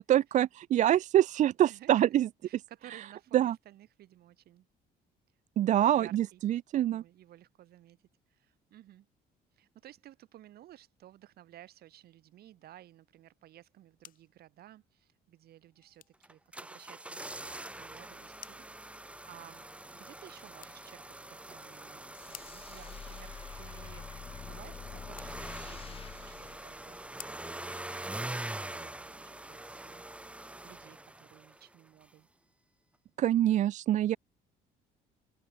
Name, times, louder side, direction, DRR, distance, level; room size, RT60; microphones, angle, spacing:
voice 1, 0.0-2.3 3.3-3.5 5.6-7.0 33.2-34.2, right 12 dB, 45° right, 0.4 m, -25 dB
voice 2, 1.6-2.2 2.4-4.7 5.8-6.4 6.7-8.0 8.3-9.1 9.5-19.6 19.9-30.0 30.6-32.3, right 13 dB, 70° right, 5.0 m, -56 dB
sound 1, 13.6-28.5, left 10 dB, 55° left, 4.3 m, -58 dB
sound 2, 16.2-31.7 32.0-32.1, right 1 dB, 5° right, 1.2 m, -44 dB
sound 3, 22.1-27.5, left 6 dB, 35° left, 1.5 m, -47 dB
cardioid pair, 110°, 17 cm